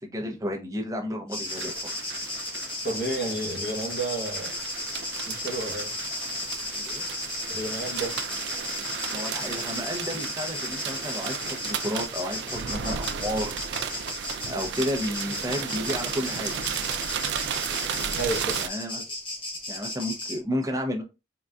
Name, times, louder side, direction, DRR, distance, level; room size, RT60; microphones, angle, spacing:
voice 1, 0.0-1.7 6.7-7.0 9.1-13.5 14.5-16.5 18.6-19.1 19.7-21.0, equal, 20° right, 0.5 m, -32 dB
sound 1, 1.3-20.4, left 2 dB, 30° left, 0.8 m, -35 dB
sound 2, 1.5-18.7, right 8 dB, 80° right, 0.3 m, -34 dB
voice 2, 2.8-4.5 5.3-5.9 7.5-8.2 18.2-18.6, right 2 dB, 60° left, 0.8 m, -31 dB
3.8 x 2.3 x 2.2 m
head